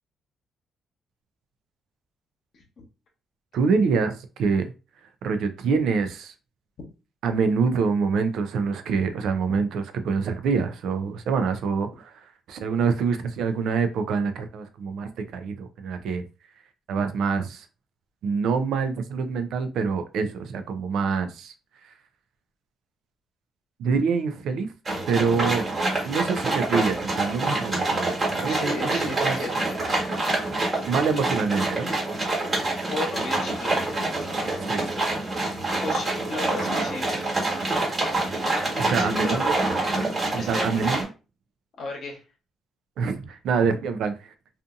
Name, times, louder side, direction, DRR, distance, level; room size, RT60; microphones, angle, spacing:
voice 1, 2.5-2.9 28.5-29.7 30.6-30.9 31.9-32.0 32.3-32.4 32.9-34.0 35.8-37.2 38.7-39.6 40.4-40.9 41.8-42.2, left 3 dB, 60° left, 1 dB, 0.9 m, -35 dB
voice 2, 3.5-4.7 5.0-6.3 7.2-16.2 16.9-17.7 18.2-21.5 21.8-21.9 23.8-24.7 25.1-25.7 26.0-28.1 28.4-29.5 30.9-31.9 34.7-34.9 38.8-39.6 40.3-41.1 43.0-44.3, right 5 dB, 75° right, 9 dB, 0.4 m, -26 dB
sound 1, 24.9-41.0, right 2 dB, 35° right, 1.3 m, -26 dB
2.6 x 2.5 x 2.4 m, 0.31 s
cardioid pair, 90°, 0 cm